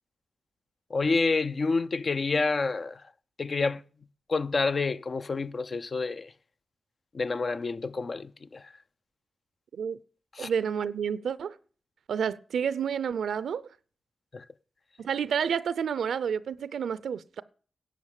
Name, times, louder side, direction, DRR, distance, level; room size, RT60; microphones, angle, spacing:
voice 1, 0.9-3.0 3.4-3.8 4.3-6.3 7.1-8.6 10.4-10.5 14.3-14.4, left 4 dB, 55° left, 0.6 m, -28 dB
voice 2, 10.4-11.6 12.1-13.6 15.0-17.4, right 7 dB, 90° right, 0.5 m, -30 dB
11.0 x 7.6 x 7.4 m
cardioid pair, 45°, 0 cm